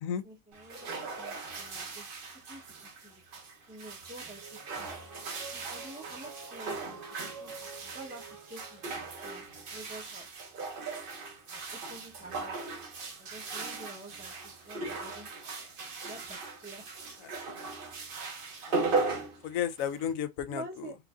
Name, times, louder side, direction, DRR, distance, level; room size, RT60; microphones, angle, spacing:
voice 1, 0.2-0.9 1.2-2.1 2.5-3.2 3.7-4.9 5.5-8.8 9.2-10.3 11.5-12.6 13.2-16.9 20.5-21.0, right 2 dB, 10° right, 0.6 m, -48 dB
sound 1, 0.5-20.1, right 3 dB, 50° right, 0.8 m, -38 dB
sound 2, 0.7-2.1 4.4-9.6, right 4 dB, 75° right, 1.3 m, -50 dB
voice 2, 18.7-19.2 19.4-20.9, left 9 dB, 85° left, 1.0 m, -34 dB
4.6 x 2.5 x 2.3 m
omnidirectional pair, 1.4 m